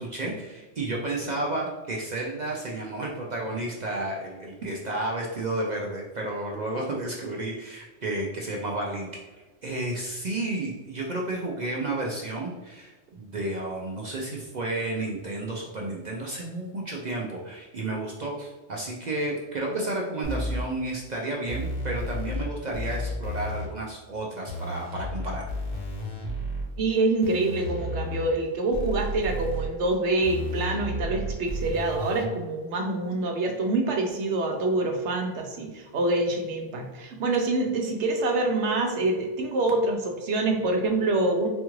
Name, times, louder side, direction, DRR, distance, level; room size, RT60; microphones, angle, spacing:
voice 1, 0.0-25.4, right 2 dB, 55° right, -1 dB, 0.5 m, -32 dB
sound 1, 20.2-20.6 21.5-22.4 22.7-23.7 24.5-26.6 27.2-28.3 28.7-29.7 30.2-32.2, equal, 30° left, 0.7 m, -32 dB
voice 2, 26.8-41.5, right 2 dB, 70° right, 2 dB, 0.9 m, -26 dB
4.3 x 2.4 x 3.0 m, 1.2 s
omnidirectional pair, 1.3 m